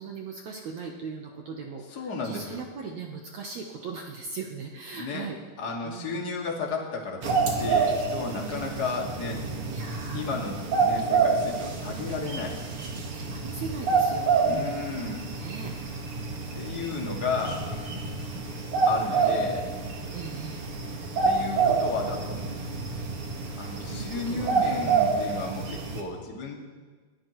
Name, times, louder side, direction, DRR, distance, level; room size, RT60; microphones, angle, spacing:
voice 1, 0.0-5.4 5.8-6.3 9.7-10.5 11.0-11.5 13.1-14.9 15.3-15.7 19.1-19.3 20.1-20.7 23.8-24.9, right 5 dB, 80° right, 1 dB, 1.6 m, -39 dB
voice 2, 1.9-2.6 5.0-5.3 5.6-9.4 10.1-12.6 14.4-15.2 16.5-17.7 18.9-19.6 21.2-22.4 23.6-26.6, left 4 dB, 35° left, -1 dB, 1.8 m, -33 dB
sound 1, 7.2-26.0, right 4 dB, 50° right, 1.7 m, -28 dB
22.0 x 18.0 x 3.1 m, 1.4 s
omnidirectional pair, 4.7 m